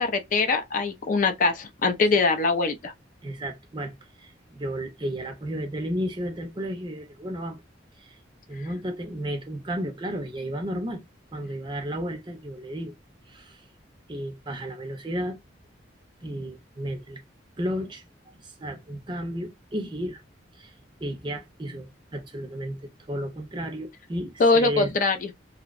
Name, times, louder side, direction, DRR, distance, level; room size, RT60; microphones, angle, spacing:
voice 1, 0.0-2.9 24.4-25.3, left 3 dB, 45° left, 0.4 m, -23 dB
voice 2, 3.2-3.9 4.2-7.6 8.0-8.2 8.5-11.0 11.3-13.0 13.3-13.6 14.1-15.4 16.2-17.2 17.6-18.0 18.4-20.2 20.6-20.7 21.0-24.9, equal, 25° right, 0.5 m, -33 dB
2.6 x 2.0 x 2.4 m
head